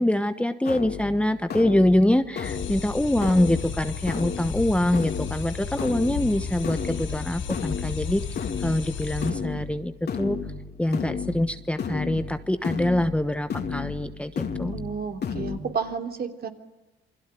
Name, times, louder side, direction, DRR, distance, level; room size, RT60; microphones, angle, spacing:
voice 1, 0.0-10.4 10.8-14.8, left 1 dB, 5° left, 10 dB, 1.1 m, -24 dB
sound 1, 0.6-15.6, left 6 dB, 55° left, 3.0 m, -34 dB
sound 2, 2.4-9.3, left 6 dB, 80° left, 5.7 m, -34 dB
voice 2, 14.7-16.5, right 5 dB, 50° right, 6 dB, 3.2 m, -31 dB
28.0 x 21.5 x 9.1 m, 1.1 s
cardioid pair, 90°, 20 cm